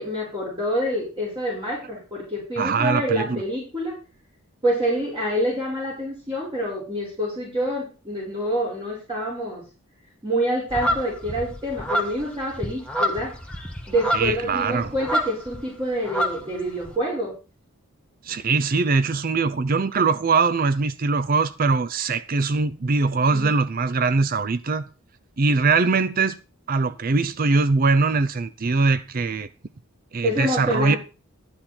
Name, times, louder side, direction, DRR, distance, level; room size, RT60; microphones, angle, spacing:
voice 1, 0.0-3.9 4.6-9.6 10.2-13.3 13.9-17.3 23.3-23.6 30.2-31.0, equal, 20° right, 5.4 m, -27 dB
voice 2, 2.6-3.4 14.1-14.9 18.2-24.8 25.4-26.4 26.7-29.5 30.1-31.0, right 4 dB, 40° right, 0.5 m, -22 dB
sound 1, 10.7-15.7 15.9-16.9, equal, 5° left, 1.5 m, -28 dB
12.5 x 9.8 x 4.3 m
head